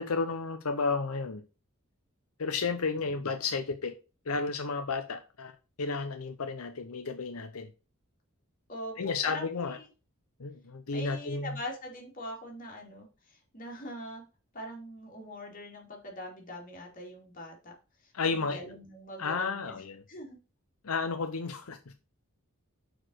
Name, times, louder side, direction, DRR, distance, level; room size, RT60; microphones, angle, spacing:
voice 1, 0.0-1.4 2.4-3.9 4.3-5.5 5.8-7.7 9.0-9.8 10.4-11.5 18.1-18.6 19.2-20.0 20.8-21.8, left 4 dB, 85° left, 0.7 m, -32 dB
voice 2, 8.7-9.9 10.9-14.2 14.5-17.7 18.0-19.8 20.1-20.4, left 1 dB, 40° left, 2.8 m, -42 dB
6.2 x 4.8 x 6.3 m
head